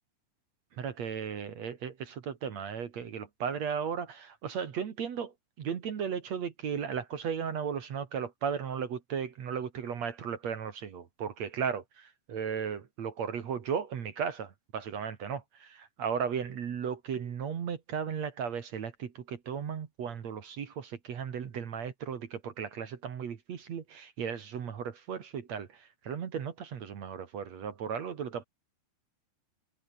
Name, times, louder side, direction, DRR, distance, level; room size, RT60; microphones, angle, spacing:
voice 1, 0.8-5.3 5.6-25.7 26.0-28.4, right 7 dB, 50° right, 2.3 m, -35 dB
omnidirectional pair, 5.5 m